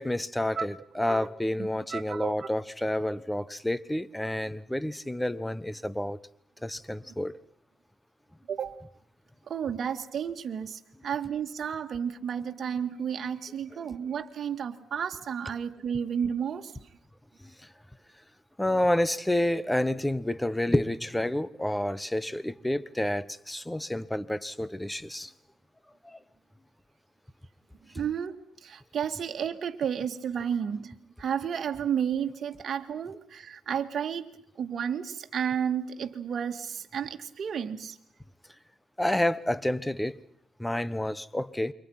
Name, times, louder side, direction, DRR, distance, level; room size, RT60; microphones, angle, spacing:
voice 1, 0.0-6.2 6.6-7.4 17.4-17.5 18.6-25.3 26.0-26.2 39.0-40.2 40.6-41.7, left 1 dB, 5° left, 1.2 m, -29 dB
voice 2, 1.6-2.5 8.5-8.8 9.5-16.7 27.9-34.3 34.6-38.0, right 8 dB, 55° right, 2.1 m, -32 dB
29.0 x 25.0 x 5.8 m
cardioid pair, 90°, 0 cm